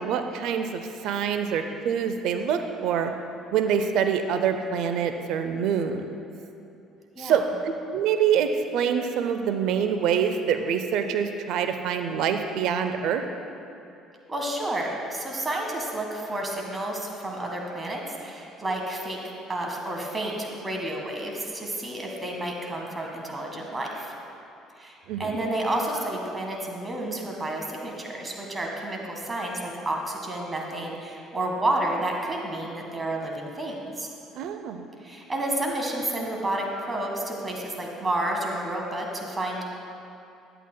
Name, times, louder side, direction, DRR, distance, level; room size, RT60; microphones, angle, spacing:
voice 1, 0.0-3.1 3.5-6.1 7.2-13.2 25.1-25.4 34.3-34.8, right 7 dB, 75° right, 7 dB, 0.4 m, -25 dB
voice 2, 14.3-19.2 19.5-24.1 24.8-34.1 35.0-39.6, right 1 dB, 25° right, 0 dB, 1.5 m, -30 dB
11.0 x 8.4 x 2.2 m, 2.7 s
supercardioid pair, 80°, 0 cm